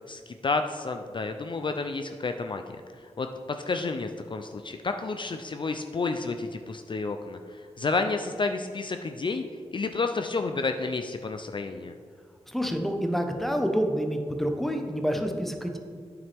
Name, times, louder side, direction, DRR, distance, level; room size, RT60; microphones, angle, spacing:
voice 1, 0.1-2.6 3.2-9.4 9.7-11.9, left 3 dB, 45° left, 6 dB, 0.4 m, -30 dB
voice 2, 12.5-15.8, equal, ahead, 4 dB, 0.9 m, -28 dB
8.7 x 7.2 x 3.4 m, 2.1 s
wide cardioid pair, 75°, 11 cm